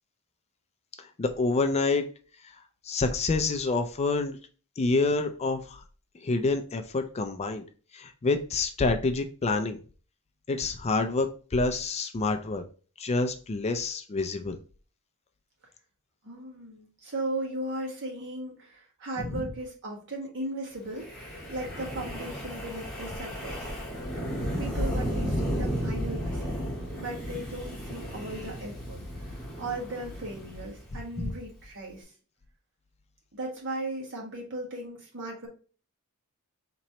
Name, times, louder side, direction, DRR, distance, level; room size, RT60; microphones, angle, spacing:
voice 1, 1.0-2.1 2.8-4.4 4.8-5.8 6.2-7.7 7.9-9.8 10.5-12.6 13.0-14.6 19.2-19.4 31.2-31.3, left 3 dB, 30° left, 7 dB, 0.4 m, -27 dB
voice 2, 16.2-23.7 24.6-26.6 27.0-32.0 33.3-35.5, right 1 dB, 55° right, -1 dB, 1.5 m, -37 dB
Wind, 21.0-31.3, equal, 5° left, 1.5 m, -34 dB
4.2 x 3.0 x 2.8 m, 0.38 s
head